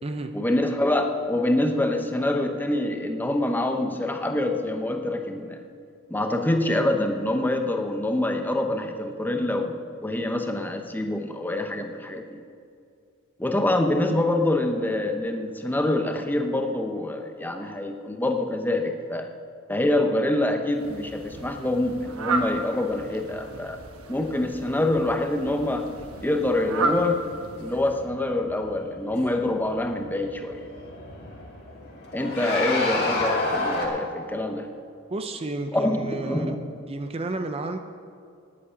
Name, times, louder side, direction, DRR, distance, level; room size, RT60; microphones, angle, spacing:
voice 1, 0.3-5.6 6.1-12.4 13.4-19.3 19.7-23.8 24.1-25.9 26.2-27.2 27.6-30.6 32.1-34.7 35.7-36.6, left 1 dB, 10° left, 5 dB, 0.8 m, -25 dB
Fowl, 20.7-28.1, right 3 dB, 80° right, 1.1 m, -34 dB
sound 1, 25.8-33.9, left 2 dB, 50° left, 2.5 m, -32 dB
voice 2, 35.1-36.5 36.9-37.8, right 2 dB, 25° right, 7 dB, 0.6 m, -31 dB
10.0 x 8.6 x 8.7 m, 2.3 s
head